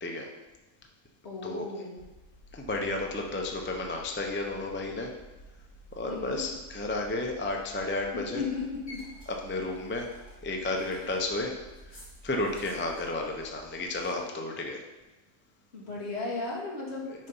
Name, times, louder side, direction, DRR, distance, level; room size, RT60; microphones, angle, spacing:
voice 1, 1.2-2.0 6.1-6.4 8.1-9.0 15.7-17.3, left 4 dB, 45° left, -5 dB, 2.2 m, -35 dB
sound 1, 2.0-14.1, equal, 60° left, 3.3 m, -51 dB
voice 2, 2.5-5.1 6.0-8.4 9.4-10.1 10.4-11.5 12.2-14.8, left 2 dB, 20° left, 2 dB, 0.3 m, -32 dB
6.3 x 5.5 x 5.5 m, 1.1 s
omnidirectional pair, 1.6 m